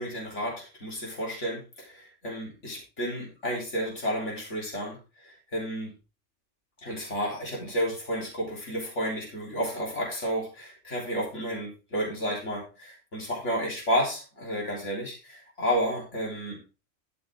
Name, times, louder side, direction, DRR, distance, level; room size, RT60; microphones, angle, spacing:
voice 1, 0.0-5.0 5.2-5.9 6.8-16.6, equal, 70° left, -3 dB, 3.9 m, -31 dB
12.5 x 6.9 x 3.6 m, 0.31 s
omnidirectional pair, 1.3 m